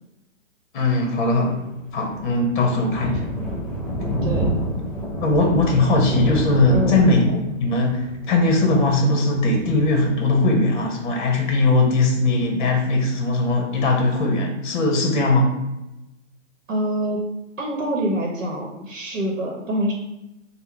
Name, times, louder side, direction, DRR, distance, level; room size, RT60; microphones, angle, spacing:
voice 1, 0.7-1.6 1.9-3.3 5.2-15.6, left 2 dB, 40° left, 2 dB, 0.9 m, -20 dB
Thunder, 1.6-10.8, right 1 dB, 5° left, 0.7 m, -28 dB
voice 2, 4.2-4.5 6.7-7.0 16.7-17.2 17.6-19.9, equal, 70° right, -1 dB, 0.9 m, -25 dB
3.6 x 2.2 x 4.4 m, 0.93 s
hypercardioid pair, 140°, 39 cm